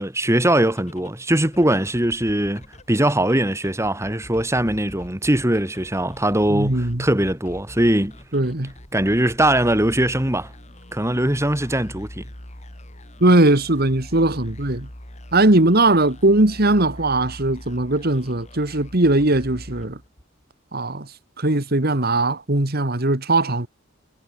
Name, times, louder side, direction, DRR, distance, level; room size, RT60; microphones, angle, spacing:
voice 1, 0.0-8.1 8.9-10.5 10.9-12.2, right 1 dB, 15° right, 2.9 m, -21 dB
sound 1, 0.8-20.4, equal, 35° left, 6.5 m, -42 dB
voice 2, 6.5-7.0 8.3-8.7 13.2-14.9 15.3-20.0 20.7-21.1 21.4-23.7, right 2 dB, 50° right, 2.1 m, -19 dB
head